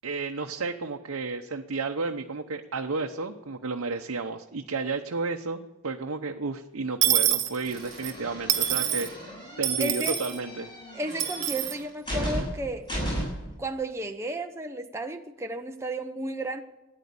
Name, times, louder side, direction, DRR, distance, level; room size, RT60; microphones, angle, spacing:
voice 1, 0.0-9.1 9.6-10.7, right 4 dB, 80° right, 0.8 m, -32 dB
Dishes pots and pans / Coin (dropping), 7.0-8.1 8.5-9.1 9.6-10.4 11.2-11.7, right 11 dB, 55° right, 1.3 m, -26 dB
sound 1, 7.6-13.6, equal, 20° left, 6.9 m, -35 dB
voice 2, 9.8-10.2 10.9-12.9 13.6-16.6, right 1 dB, 10° right, 0.7 m, -33 dB
13.5 x 9.9 x 8.4 m
head